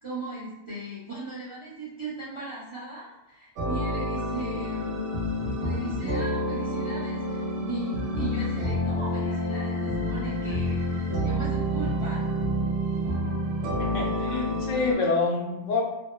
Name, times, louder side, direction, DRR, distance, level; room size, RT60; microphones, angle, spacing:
voice 1, 0.0-5.0 5.6-12.3, right 3 dB, 45° right, -8 dB, 0.4 m, -38 dB
sound 1, 3.6-14.9, equal, 65° right, 0.9 m, -28 dB
voice 2, 13.8-15.8, left 3 dB, 85° left, -1 dB, 1.0 m, -27 dB
2.9 x 2.0 x 2.2 m, 0.91 s
omnidirectional pair, 1.3 m